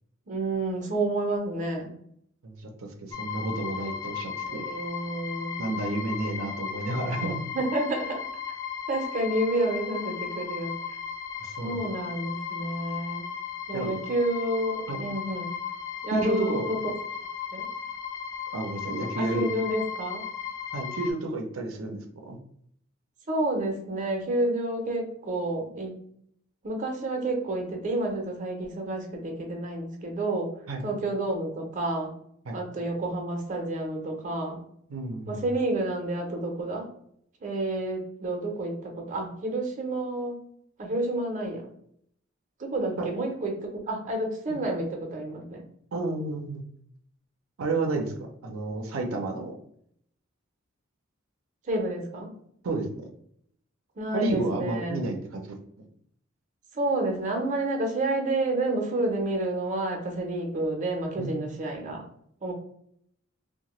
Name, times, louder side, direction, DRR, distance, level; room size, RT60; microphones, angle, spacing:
voice 1, 0.3-1.9 4.4-5.6 7.5-8.2 8.9-10.8 11.6-13.3 13.7-15.5 16.0-16.8 17.5-17.7 19.1-20.3 23.3-25.9 26.6-30.5 30.8-32.1 32.5-34.6 35.3-36.9 37.4-40.4 40.8-41.7 42.6-45.6 51.7-52.3 54.0-55.1 56.7-62.0 62.4-62.5, right 2 dB, 35° right, 1 dB, 0.6 m, -29 dB
voice 2, 2.4-4.6 5.6-7.4 11.4-11.9 13.7-13.9 14.9-15.0 16.1-16.6 18.5-19.5 20.7-22.4 30.7-30.8 32.5-32.6 34.9-35.4 43.0-43.1 44.5-44.6 45.9-46.6 47.6-48.1 48.4-49.5 52.6-53.0 54.1-55.6 61.2-61.3, right 2 dB, 85° right, 3 dB, 0.5 m, -31 dB
sound 1, 3.1-21.1, left 7 dB, 15° left, 0.4 m, -36 dB
2.8 x 2.1 x 3.0 m, 0.68 s
head